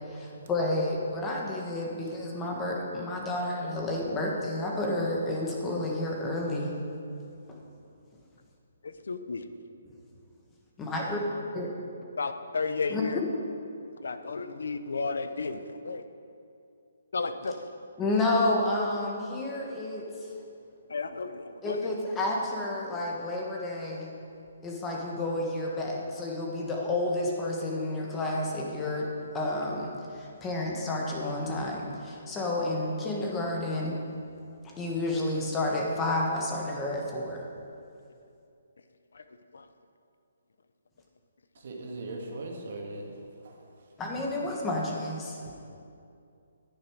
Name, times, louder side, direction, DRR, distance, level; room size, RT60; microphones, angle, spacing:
voice 1, 0.0-6.7 7.5-7.6 10.8-11.2 11.5-11.7 12.9-13.0 18.0-20.1 21.6-24.1 24.6-34.0 34.8-37.4 44.0-45.5, left 2 dB, 10° left, -1 dB, 1.4 m, -30 dB
voice 2, 8.8-9.5 12.2-13.2 14.0-16.0 17.1-17.7 20.9-21.9 39.1-39.2 39.5-39.6, left 4 dB, 80° left, 10 dB, 0.8 m, -33 dB
voice 3, 41.6-43.1 43.4-43.6, right 2 dB, 55° right, 0 dB, 2.0 m, -39 dB
10.0 x 9.6 x 4.7 m, 2.6 s
hypercardioid pair, 165°, 0 cm